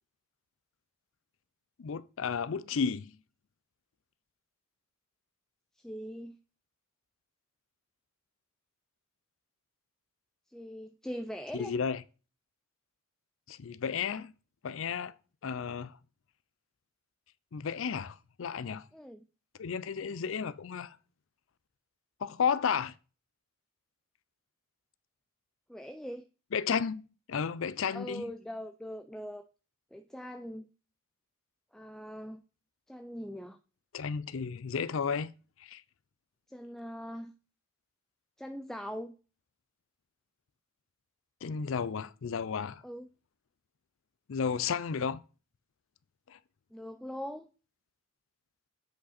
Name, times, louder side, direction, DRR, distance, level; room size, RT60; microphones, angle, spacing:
voice 1, 1.8-3.2 11.5-12.0 13.5-14.3 14.6-15.1 15.4-16.0 17.5-18.9 19.6-21.0 22.2-22.9 26.5-27.0 27.3-28.2 33.9-35.3 35.6-35.8 41.4-42.8 44.3-45.2 46.3-46.4, left 6 dB, 65° left, 0.5 m, -33 dB
voice 2, 5.8-6.4 10.5-11.7 18.9-19.2 25.7-26.3 27.9-29.4 29.9-30.7 31.7-32.4 32.9-33.6 36.5-37.3 38.4-39.2 42.8-43.1 46.7-47.5, equal, ahead, 0.4 m, -41 dB
8.2 x 5.1 x 4.1 m
head